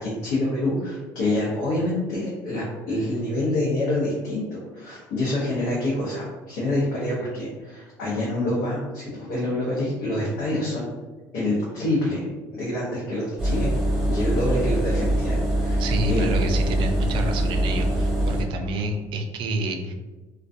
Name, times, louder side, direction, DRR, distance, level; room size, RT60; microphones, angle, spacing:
voice 1, 0.0-10.9 11.3-13.7 14.1-16.3, left 1 dB, 80° left, -7 dB, 0.8 m, -27 dB
Engine, 13.4-18.4, right 1 dB, 5° right, 0.9 m, -23 dB
voice 2, 15.8-19.9, right 2 dB, 60° right, 4 dB, 0.4 m, -28 dB
2.3 x 2.2 x 2.5 m, 1.2 s
supercardioid pair, 95°, 9 cm